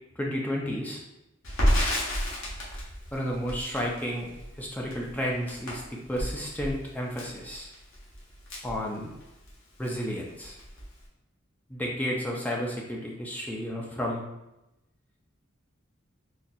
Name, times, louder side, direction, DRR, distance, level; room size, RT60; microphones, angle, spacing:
voice 1, 0.2-1.0 3.1-4.3 4.6-7.7 8.6-9.1 9.8-10.6 11.7-14.2, equal, 10° left, -2 dB, 0.4 m, -32 dB
Crackle, 1.4-9.5 9.8-10.0 10.3-11.0, equal, 70° left, 1.0 m, -31 dB
3.9 x 2.2 x 2.6 m, 0.90 s
head